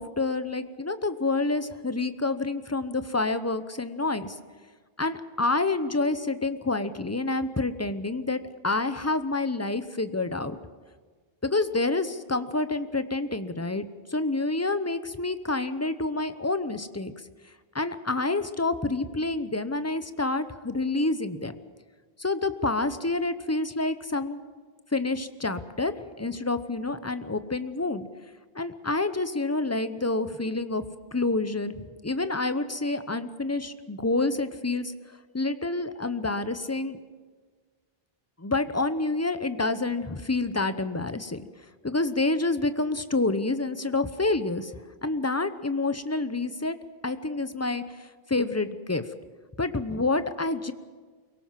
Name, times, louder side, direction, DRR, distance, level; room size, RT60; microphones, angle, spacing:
voice 1, 0.0-4.4 5.0-10.6 11.4-17.1 17.7-21.5 22.2-24.4 24.9-28.1 28.5-30.8 31.1-37.0 38.4-41.4 41.8-44.7 45.0-46.8 47.0-49.0 49.6-50.7, left 2 dB, 15° left, 11 dB, 0.8 m, -28 dB
23.5 x 17.5 x 7.5 m, 1.5 s
omnidirectional pair, 1.0 m